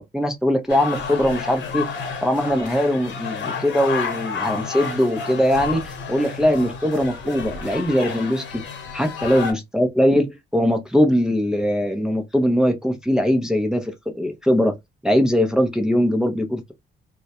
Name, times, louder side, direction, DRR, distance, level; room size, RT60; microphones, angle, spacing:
voice 1, 0.0-8.6 8.9-14.7 15.0-16.7, equal, 5° right, 0.5 m, -21 dB
sound 1, 0.7-9.5, left 5 dB, 65° left, 0.8 m, -31 dB
2.3 x 2.1 x 2.8 m
cardioid pair, 90°, 20 cm